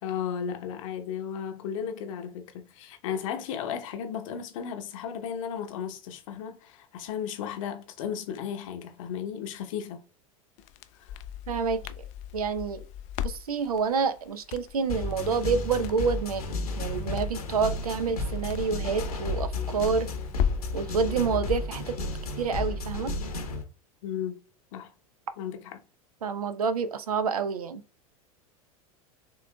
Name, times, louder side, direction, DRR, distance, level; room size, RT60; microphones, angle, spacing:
voice 1, 0.0-10.0 11.0-11.2 24.0-24.4 24.7-24.9 25.4-25.8, left 8 dB, 60° left, 0.9 m, -35 dB
Crackle, 10.6-20.8, left 10 dB, 40° left, 0.4 m, -37 dB
voice 2, 11.5-12.0 12.3-12.8 13.2-16.4 16.8-20.1 20.7-22.0 22.4-23.1 26.2-27.8, right 5 dB, 80° right, 0.5 m, -28 dB
sound 1, 14.9-23.6, left 2 dB, 85° left, 1.2 m, -32 dB
4.7 x 3.1 x 2.3 m
hypercardioid pair, 90°, 19 cm